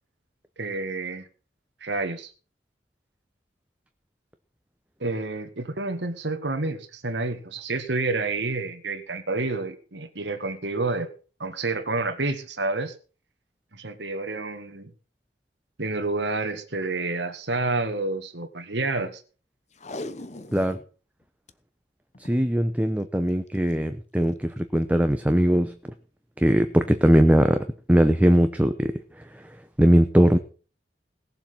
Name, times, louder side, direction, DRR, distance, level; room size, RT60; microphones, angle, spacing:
voice 1, 0.6-1.3 1.8-2.3 5.0-11.1 11.4-12.9 13.7-14.9 15.8-19.2, right 3 dB, 80° right, 7 dB, 1.8 m, -29 dB
Packing tape duct tape, 19.7-20.9 21.2-21.3 21.5-21.6 22.1-22.5 23.5-23.7 24.3-24.4, left 2 dB, 40° left, 1.0 m, -38 dB
voice 2, 22.2-25.7 26.4-28.9 29.3-29.4 29.8-30.4, equal, 10° right, 8 dB, 0.8 m, -20 dB
18.5 x 7.5 x 5.7 m, 0.38 s
head